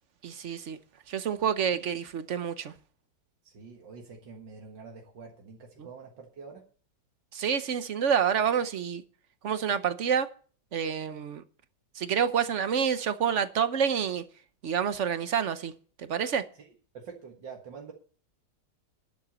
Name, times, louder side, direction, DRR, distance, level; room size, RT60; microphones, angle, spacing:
voice 1, 0.2-0.8 1.1-2.7 5.8-5.9 7.3-9.0 9.4-10.3 10.7-11.4 11.9-14.2 14.6-15.7 16.0-16.4, right 7 dB, 50° right, 1.0 m, -28 dB
voice 2, 3.4-6.6 16.6-16.7 16.9-17.9, right 5 dB, 80° right, 2.3 m, -46 dB
12.0 x 7.8 x 7.4 m
omnidirectional pair, 1.9 m